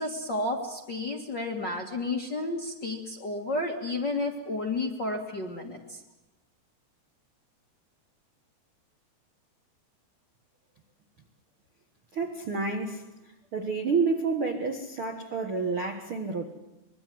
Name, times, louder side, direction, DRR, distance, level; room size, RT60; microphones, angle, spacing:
voice 1, 0.0-6.0, left 2 dB, 40° left, 0 dB, 1.6 m, -31 dB
voice 2, 12.1-13.1 13.5-16.5, right 4 dB, 60° right, 4 dB, 1.3 m, -29 dB
25.5 x 22.0 x 7.8 m, 0.95 s
omnidirectional pair, 4.8 m